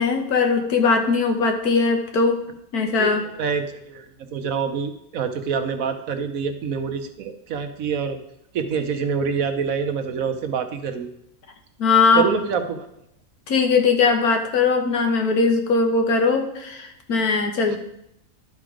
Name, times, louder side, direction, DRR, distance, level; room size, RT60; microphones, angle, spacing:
voice 1, 0.0-2.4 2.7-3.2 11.8-12.2 13.5-17.8, left 4 dB, 75° left, 4 dB, 1.6 m, -20 dB
voice 2, 2.9-8.2 8.5-11.1 12.1-12.9 17.7-17.8, right 6 dB, 65° right, 7 dB, 1.1 m, -26 dB
12.0 x 4.2 x 5.0 m, 0.78 s
omnidirectional pair, 1.6 m